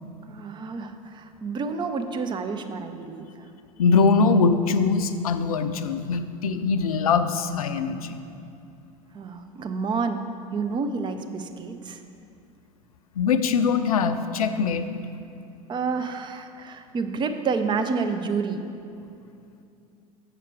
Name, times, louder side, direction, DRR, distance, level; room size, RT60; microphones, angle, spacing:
voice 1, 0.3-3.3 9.1-10.3 10.5-12.0 15.7-18.6, right 4 dB, 25° right, 7 dB, 0.6 m, -29 dB
voice 2, 3.8-8.2 13.2-14.9, left 5 dB, 75° left, 10 dB, 0.5 m, -22 dB
8.1 x 5.8 x 4.7 m, 2.6 s
figure-of-eight pair, 75°, 19 cm